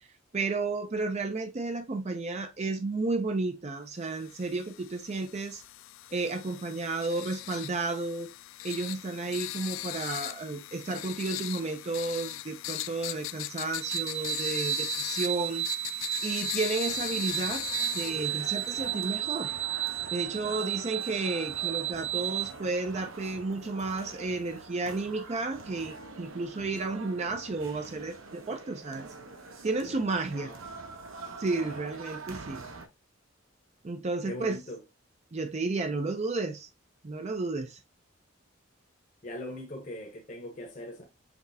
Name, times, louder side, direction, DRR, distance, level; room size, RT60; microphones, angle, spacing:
voice 1, 0.3-5.6 6.1-8.3 8.6-15.7 16.2-17.6 17.9-19.5 20.1-29.1 29.6-30.5 31.4-32.6 33.8-34.6 35.3-36.7 37.0-37.8, right 3 dB, 35° right, 0.5 m, -32 dB
sound 1, 4.2-19.1, left 15 dB, 65° left, 0.3 m, -39 dB
sound 2, 13.8-22.5, right 13 dB, 55° right, 0.8 m, -33 dB
sound 3, 16.8-32.9, right 3 dB, 80° right, 1.0 m, -45 dB
voice 2, 29.9-30.6 31.5-31.9 34.3-34.8 39.2-41.0, left 1 dB, 40° left, 1.0 m, -41 dB
5.9 x 3.2 x 2.7 m
head